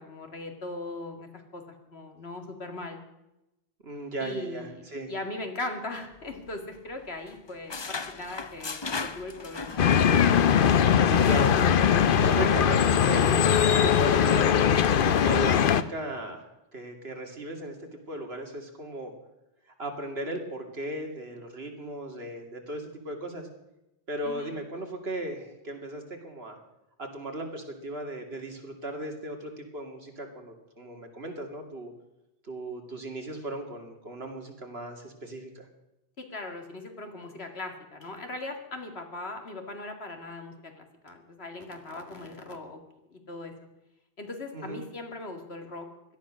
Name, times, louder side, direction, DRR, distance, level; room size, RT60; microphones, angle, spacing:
voice 1, 0.0-3.0 4.2-9.9 24.2-24.5 36.2-42.8 43.1-43.5 44.2-45.9, left 2 dB, 85° left, 4 dB, 2.5 m, -39 dB
voice 2, 3.8-5.1 11.0-11.8 12.2-14.8 15.2-19.1 19.8-23.5 24.1-26.6 27.0-31.9 32.5-35.7 44.5-44.8, right 1 dB, 80° right, 3 dB, 2.9 m, -36 dB
sound 1, 6.1-7.0 7.3-10.3 10.6-10.8 11.2-11.5, left 4 dB, 30° left, 0.6 m, -37 dB
sound 2, 9.8-15.8, left 8 dB, 60° left, 0.9 m, -21 dB
17.0 x 12.5 x 6.3 m, 0.92 s
omnidirectional pair, 1.0 m